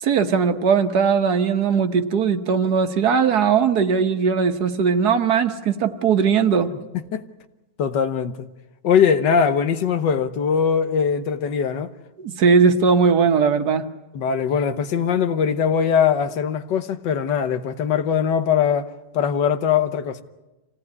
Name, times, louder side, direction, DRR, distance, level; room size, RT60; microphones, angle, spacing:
voice 1, 0.0-6.7 12.2-13.8, right 6 dB, 65° right, 1.6 m, -19 dB
voice 2, 7.8-8.5 8.8-11.9 14.1-18.9 19.1-20.2, left 7 dB, 85° left, 1.7 m, -21 dB
26.0 x 17.5 x 9.6 m
omnidirectional pair, 1.9 m